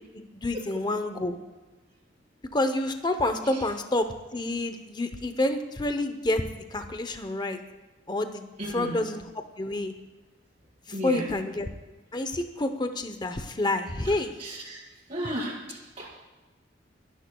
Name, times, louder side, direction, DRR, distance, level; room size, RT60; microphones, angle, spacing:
voice 1, 0.1-1.3 2.5-7.6 8.1-8.4 8.7-9.2 9.6-9.9 11.0-11.7 12.1-14.3, left 2 dB, 25° left, 7 dB, 0.8 m, -28 dB
voice 2, 8.6-9.0 10.9-11.3 14.0-14.8 15.1-16.2, right 1 dB, 35° right, -7 dB, 4.9 m, -35 dB
29.5 x 11.0 x 2.3 m, 1.2 s
head